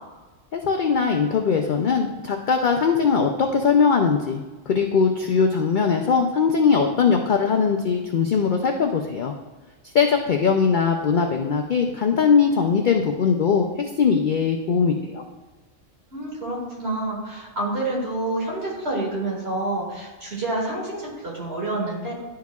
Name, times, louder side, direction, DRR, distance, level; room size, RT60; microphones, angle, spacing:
voice 1, 0.5-9.3 9.9-15.2, left 5 dB, 60° left, 4 dB, 0.5 m, -20 dB
voice 2, 16.1-22.1, right 2 dB, 55° right, -4 dB, 2.1 m, -28 dB
11.0 x 4.8 x 2.3 m, 1.2 s
omnidirectional pair, 1.3 m